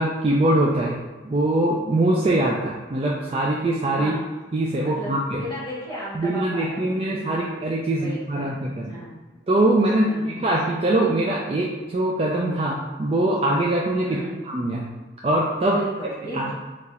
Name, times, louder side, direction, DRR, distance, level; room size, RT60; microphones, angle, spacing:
voice 1, 0.0-4.1 4.5-5.4 6.2-9.0 9.5-14.2 14.5-14.9 15.2-15.8 16.2-16.5, right 1 dB, 30° right, -3 dB, 0.4 m, -23 dB
voice 2, 4.8-7.6 7.9-9.2 10.0-10.5 14.0-14.4 15.7-16.5, right 1 dB, 20° left, -8 dB, 1.0 m, -35 dB
3.8 x 2.5 x 4.2 m, 1.3 s
head